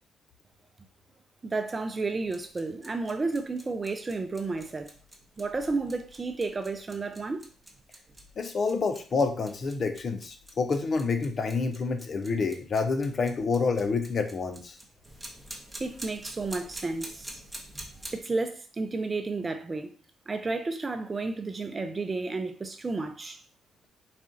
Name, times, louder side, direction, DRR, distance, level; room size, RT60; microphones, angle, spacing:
voice 1, 1.4-4.9 5.4-7.4 15.8-17.4 18.1-19.9 20.3-23.4, right 3 dB, 30° right, 0.6 m, -32 dB
sound 1, 2.2-18.2, right 1 dB, 10° right, 1.0 m, -47 dB
voice 2, 8.4-14.8, left 4 dB, 45° left, 0.7 m, -28 dB
4.2 x 2.5 x 3.7 m
cardioid pair, 90°, 0 cm